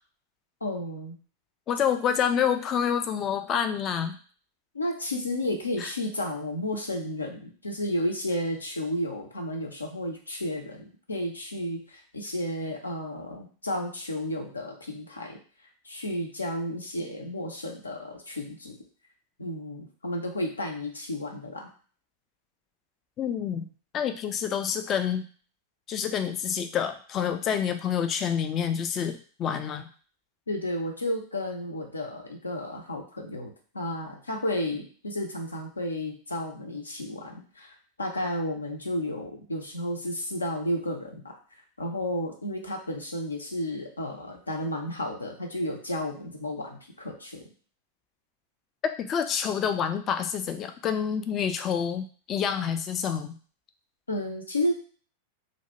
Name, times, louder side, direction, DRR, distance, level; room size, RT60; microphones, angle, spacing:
voice 1, 0.6-1.2 4.7-15.4 15.8-18.8 19.4-21.7 30.5-41.3 41.8-47.4 54.1-54.7, left 1 dB, 80° left, 2 dB, 0.5 m, -32 dB
voice 2, 1.7-4.2 5.8-5.9 23.2-23.7 23.9-25.2 25.9-29.9 48.8-53.4, left 8 dB, 30° left, 8 dB, 0.3 m, -28 dB
2.3 x 2.1 x 2.9 m, 0.42 s
figure-of-eight pair, 90°, 0 cm